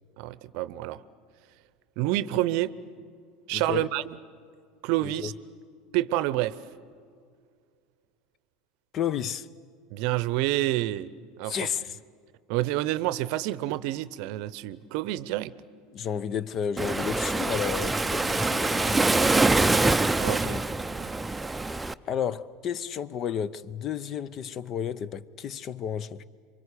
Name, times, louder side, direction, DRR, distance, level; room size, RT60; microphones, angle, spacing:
voice 1, 0.2-1.0 2.0-2.7 3.5-4.0 4.8-5.3 5.9-6.6 9.9-11.1 11.4-11.7 12.5-15.5 20.2-20.6 21.0-21.1, right 15 dB, 60° right, 0.7 m, -28 dB
voice 2, 3.5-3.9 5.0-5.3 8.9-9.5 11.5-12.0 15.9-19.0 20.4-20.6 22.1-26.2, left 8 dB, 45° left, 0.7 m, -32 dB
Waves surf, 16.8-21.9, right 2 dB, 10° right, 0.6 m, -24 dB
27.0 x 24.0 x 8.4 m
hypercardioid pair, 80°, 0 cm